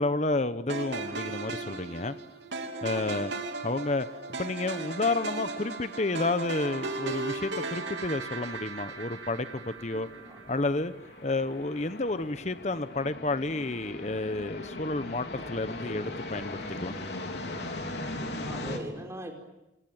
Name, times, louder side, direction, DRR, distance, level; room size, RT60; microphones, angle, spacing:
voice 1, 0.0-2.2 2.8-3.3 3.6-4.1 4.4-10.1 10.5-10.9 11.2-16.9, left 2 dB, 40° left, 12 dB, 0.9 m, -30 dB
sound 1, 0.7-11.0, right 3 dB, 80° right, 3.1 m, -37 dB
voice 2, 2.9-3.4 9.9-10.4 18.4-19.4, right 1 dB, 15° right, 3 dB, 4.7 m, -41 dB
sound 2, 8.4-18.8, left 2 dB, 70° left, 3.6 m, -39 dB
27.5 x 22.0 x 8.9 m, 0.95 s
head